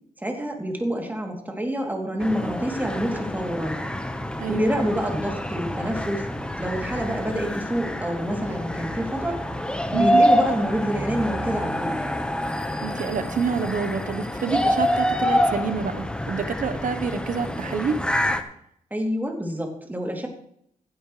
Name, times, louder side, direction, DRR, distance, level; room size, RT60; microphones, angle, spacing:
voice 1, 0.2-3.8 4.5-6.3 6.6-9.4 9.9-12.0 18.9-20.3, equal, 10° right, 1 dB, 3.0 m, -27 dB
sound 1, 2.2-18.4, left 1 dB, 5° left, 1.2 m, -26 dB
voice 2, 4.4-4.7 9.9-10.2 12.8-18.0, right 5 dB, 65° right, 11 dB, 1.1 m, -27 dB
15.5 x 8.8 x 3.3 m, 0.69 s
cardioid pair, 65°, 14 cm